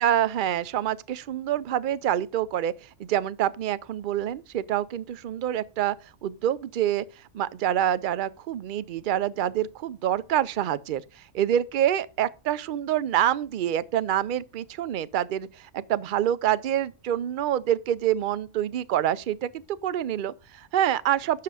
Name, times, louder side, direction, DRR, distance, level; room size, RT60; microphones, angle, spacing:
voice 1, 0.0-2.7 3.0-6.0 6.2-7.0 7.3-11.0 11.3-15.5 15.7-21.4, right 11 dB, 60° right, 0.5 m, -26 dB
8.6 x 6.6 x 4.8 m
omnidirectional pair, 1.3 m